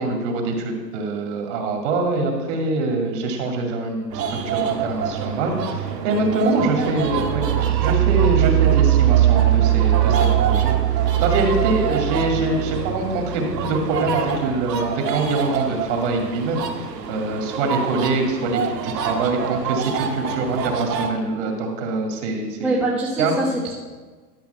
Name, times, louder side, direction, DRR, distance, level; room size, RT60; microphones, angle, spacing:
voice 1, 0.0-10.7 11.1-22.7 23.2-23.3, right 2 dB, 45° right, 2 dB, 2.4 m, -24 dB
Pond full of swans, 4.1-21.1, right 6 dB, 85° right, 1.6 m, -27 dB
sound 1, 7.0-14.7, right 14 dB, 65° right, 0.5 m, -20 dB
voice 2, 22.6-23.8, right 2 dB, 5° right, -7 dB, 1.3 m, -24 dB
12.0 x 5.4 x 6.8 m, 1.3 s
hypercardioid pair, 155°, 48 cm